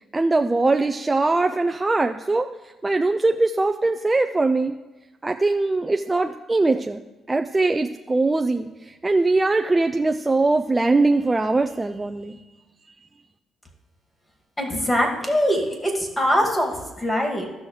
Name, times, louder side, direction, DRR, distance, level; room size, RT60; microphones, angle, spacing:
voice 1, 0.1-2.5 2.8-4.7 5.2-7.0 7.3-12.4, right 3 dB, 20° right, 6 dB, 0.4 m, -21 dB
voice 2, 14.6-17.5, equal, 15° left, 2 dB, 2.2 m, -22 dB
15.0 x 6.2 x 3.2 m, 1.1 s
cardioid pair, 90°, 0 cm